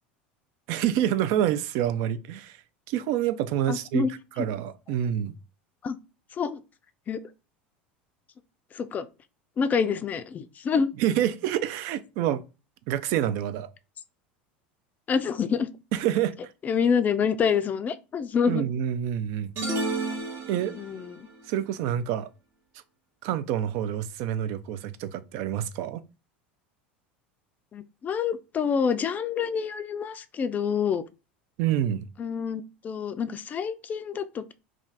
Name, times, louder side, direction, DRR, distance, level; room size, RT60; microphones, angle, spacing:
voice 1, 0.7-2.6 2.9-4.1 4.4-5.3 11.0-12.4 12.9-13.7 15.9-16.3 18.5-19.5 20.5-20.7 21.5-22.3 23.2-26.0 31.6-32.1, right 11 dB, 60° right, 0.3 m, -27 dB
voice 2, 3.7-4.1 5.8-6.0 6.4-6.6 7.1-7.2 8.7-9.1 9.6-10.9 15.1-15.7 16.6-18.6 20.7-21.3 27.7-31.0 32.2-34.5, left 6 dB, 30° left, 0.3 m, -27 dB
sound 1, 19.6-21.1, right 2 dB, 40° right, 0.9 m, -31 dB
2.5 x 2.3 x 3.3 m
hypercardioid pair, 85°, 6 cm